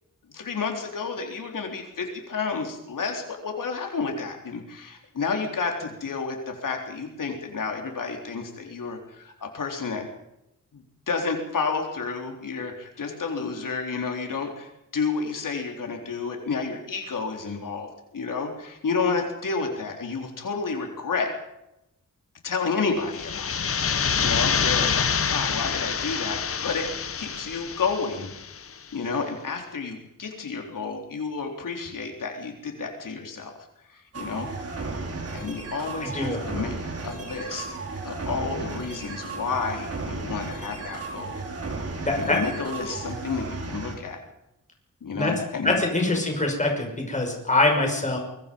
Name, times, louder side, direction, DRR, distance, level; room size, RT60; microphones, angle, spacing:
voice 1, 0.3-10.0 10.7-17.9 18.1-21.3 22.4-23.6 24.2-28.4 28.9-33.5 33.9-34.5 34.9-35.0 35.3-36.7 37.0-37.7 38.0-41.4 42.1-44.2 45.0-45.8, left 4 dB, 80° left, 2 dB, 4.0 m, -30 dB
sound 1, 23.0-28.7, left 6 dB, 45° left, 0.9 m, -27 dB
sound 2, 34.1-43.9, right 3 dB, 50° right, 4.8 m, -34 dB
voice 2, 36.0-36.4 42.1-42.4 45.1-45.3 45.6-48.2, left 2 dB, 25° left, 2 dB, 5.9 m, -24 dB
25.0 x 23.5 x 5.5 m, 0.87 s
wide cardioid pair, 175°, 32 cm